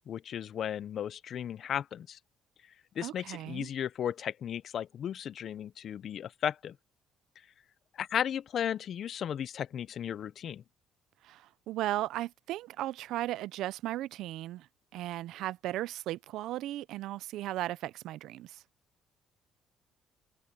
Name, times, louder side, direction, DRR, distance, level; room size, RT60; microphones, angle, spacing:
voice 1, 0.1-2.2 3.0-6.8 8.0-10.6, left 9 dB, 55° left, 0.6 m, -35 dB
voice 2, 3.0-3.7 11.2-14.7 14.9-18.6, right 14 dB, 80° right, 0.6 m, -36 dB
cardioid pair, 90°, 0 cm